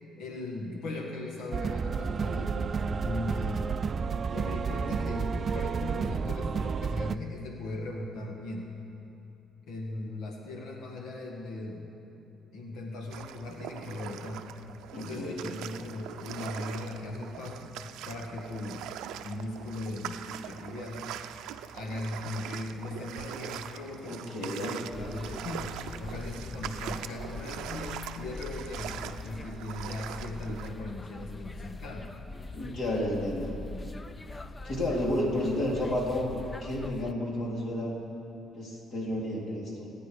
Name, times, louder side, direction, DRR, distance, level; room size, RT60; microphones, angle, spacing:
voice 1, 0.2-3.8 4.3-8.7 9.7-11.9 12.5-14.5 14.9-17.7 18.0-18.9 19.2-21.0 21.7-32.1, left 2 dB, 85° left, 1 dB, 1.8 m, -38 dB
sound 1, 1.5-7.2, right 5 dB, 40° right, 0.4 m, -31 dB
sound 2, 13.1-30.7, right 10 dB, 90° right, 0.5 m, -42 dB
voice 2, 14.9-15.5 24.1-24.7 32.5-33.5 34.6-37.9 38.6-39.9, left 1 dB, 55° left, -3 dB, 4.0 m, -31 dB
sound 3, 24.9-37.1, left 2 dB, 20° left, 0.6 m, -43 dB
26.0 x 9.5 x 5.2 m, 2.9 s
cardioid pair, 115°, 0 cm